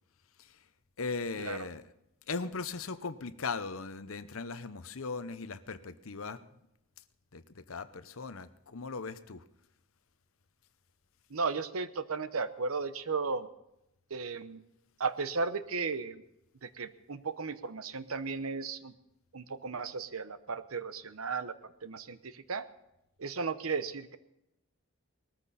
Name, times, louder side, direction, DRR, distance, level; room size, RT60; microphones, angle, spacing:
voice 1, 1.0-1.8 2.3-6.5 7.3-9.4, left 4 dB, 75° left, 13 dB, 0.8 m, -38 dB
voice 2, 11.3-13.5 14.1-14.6 15.0-16.2 16.6-18.9 19.3-22.7 23.2-24.2, right 4 dB, 85° right, 13 dB, 0.9 m, -35 dB
19.5 x 14.0 x 4.2 m, 0.86 s
head